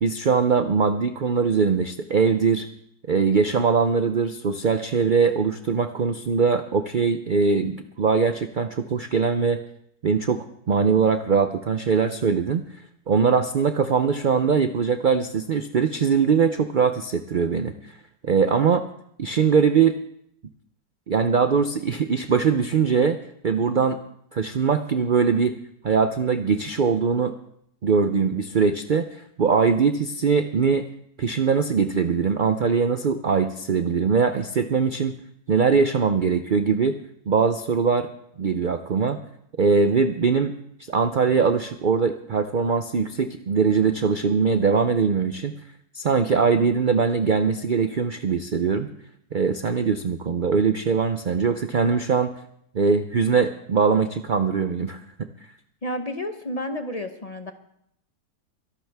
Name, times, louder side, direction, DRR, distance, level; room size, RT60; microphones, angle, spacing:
voice 1, 0.0-2.7 3.1-9.6 10.0-12.6 13.1-18.0 18.2-18.8 19.2-19.9 21.1-24.0 24.3-25.6 25.8-27.3 27.8-30.9 31.2-35.2 35.5-37.0 37.3-38.1 38.4-39.2 39.6-40.5 40.9-45.5 45.9-48.9 49.3-52.3 52.7-55.3, right 5 dB, 75° right, 8 dB, 0.4 m, -21 dB
voice 2, 55.8-57.5, left 1 dB, 30° left, 7 dB, 0.8 m, -31 dB
23.5 x 12.0 x 3.5 m, 0.71 s
omnidirectional pair, 1.7 m